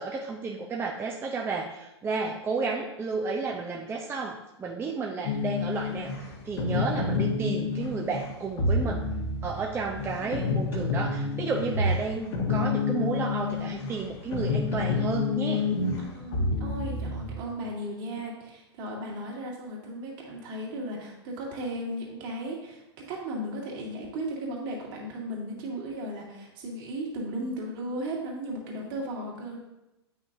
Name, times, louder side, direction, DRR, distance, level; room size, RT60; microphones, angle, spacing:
voice 1, 0.0-9.0 9.4-15.6, right 4 dB, 15° right, 0 dB, 0.7 m, -32 dB
sound 1, 5.2-17.3, left 3 dB, 55° left, 1.4 m, -29 dB
voice 2, 10.2-10.7 16.0-22.8 23.1-29.6, right 1 dB, 50° right, -2 dB, 2.3 m, -36 dB
8.9 x 5.8 x 2.7 m, 0.91 s
figure-of-eight pair, 100°, 14 cm